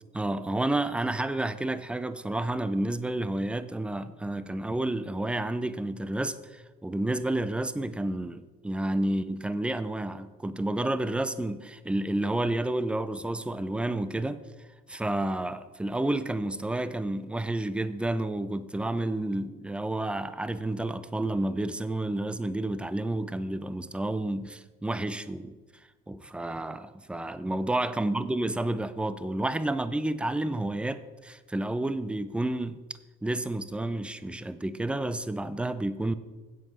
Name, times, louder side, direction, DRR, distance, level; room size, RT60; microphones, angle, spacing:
voice 1, 0.1-14.4 14.9-25.6 26.1-32.8 33.2-36.1, right 1 dB, 5° right, 0.4 m, -30 dB
8.1 x 7.7 x 5.4 m
cardioid pair, 115°, 21 cm